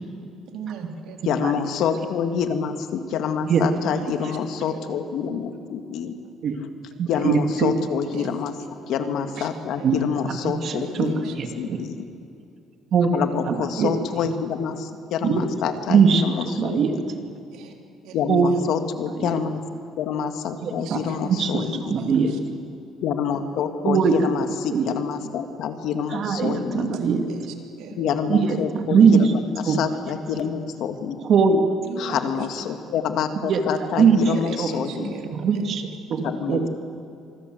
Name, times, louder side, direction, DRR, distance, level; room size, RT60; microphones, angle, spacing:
voice 1, 0.5-1.2 3.6-4.0 4.7-5.0 8.1-8.3 9.2-9.5 9.8-10.1 10.6-11.7 17.5-17.7 18.0-18.2 18.5-18.6 20.8-21.7 21.9-22.4 23.2-23.4 27.3-28.1 29.0-29.1 29.5-29.7 31.8-32.2 34.3-35.7 36.5-36.7, right 6 dB, 85° right, 2 dB, 3.5 m, -39 dB
voice 2, 1.2-6.1 6.6-6.7 7.1-8.5 8.9-12.0 13.1-17.1 18.1-19.6 20.0-22.0 23.0-26.9 28.0-31.2 32.0-35.1 36.2-36.7, left 7 dB, 70° left, 7 dB, 2.0 m, -27 dB
voice 3, 7.0-7.7 9.8-10.0 10.6-11.1 11.4-11.8 12.9-13.9 15.2-15.5 15.9-16.2 16.6-17.3 18.3-18.5 19.2-19.3 20.6-21.0 21.2-22.3 23.8-24.1 24.7-24.8 26.1-27.3 28.3-29.2 29.7-29.8 31.3-31.6 33.4-33.6 34.0-34.2 34.6-34.7 35.0-35.1 35.3-36.6, right 6 dB, 50° right, 5 dB, 2.6 m, -21 dB
26.5 x 21.5 x 8.0 m, 2.7 s
cardioid pair, 140°, 0 cm